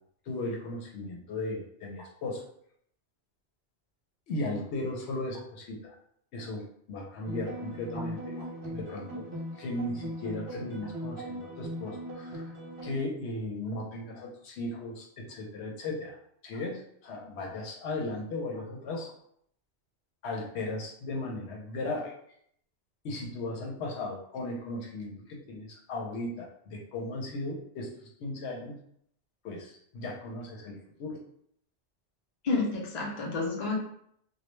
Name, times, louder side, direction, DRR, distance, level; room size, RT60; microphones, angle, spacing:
voice 1, 0.3-2.4 4.3-5.9 6.3-8.4 8.7-9.3 9.6-12.5 12.8-16.2 16.4-19.1 20.2-22.1 23.0-28.8 29.4-31.2, left 2 dB, 80° left, -1 dB, 0.9 m, -36 dB
sound 1, 7.2-13.0, equal, 65° right, 0.9 m, -39 dB
voice 2, 32.4-33.8, left 3 dB, 50° left, -2 dB, 0.6 m, -30 dB
2.2 x 2.1 x 3.0 m, 0.69 s
omnidirectional pair, 1.1 m